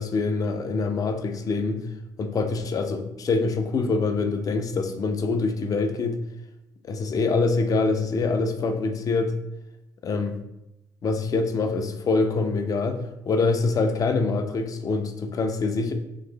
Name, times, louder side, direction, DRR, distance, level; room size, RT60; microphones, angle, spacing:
voice 1, 0.0-1.8 2.2-6.2 6.8-9.3 10.0-10.4 11.0-15.9, left 3 dB, 35° left, 6 dB, 0.6 m, -25 dB
3.1 x 3.0 x 3.9 m, 0.88 s
figure-of-eight pair, 50°, 10 cm